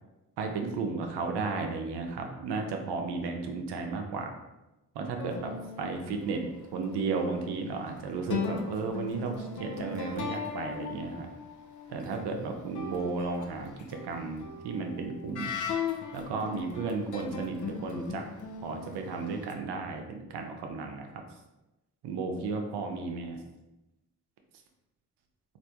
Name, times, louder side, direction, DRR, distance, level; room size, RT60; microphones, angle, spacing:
voice 1, 0.4-4.4 4.9-11.3 11.9-15.5 16.1-18.2 18.6-21.2 22.0-23.4, right 4 dB, 75° right, 3 dB, 0.6 m, -34 dB
sound 1, 5.2-7.6 8.2-12.1 12.7-19.5, left 6 dB, 50° left, 0.5 m, -38 dB
3.3 x 2.6 x 2.8 m, 1.0 s
supercardioid pair, 45°, 41 cm